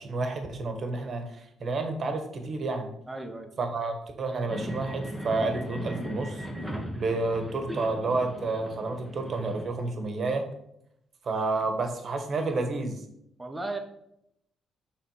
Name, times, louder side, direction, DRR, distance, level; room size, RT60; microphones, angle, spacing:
voice 1, 0.0-2.9 3.6-10.5 11.2-13.0, right 3 dB, 50° right, 5 dB, 1.5 m, -30 dB
voice 2, 3.1-3.5 13.4-13.8, right 2 dB, 15° right, 5 dB, 1.2 m, -35 dB
sound 1, 4.5-9.6, equal, ahead, 1.4 m, -38 dB
6.3 x 4.1 x 5.6 m, 0.76 s
cardioid pair, 90°, 0 cm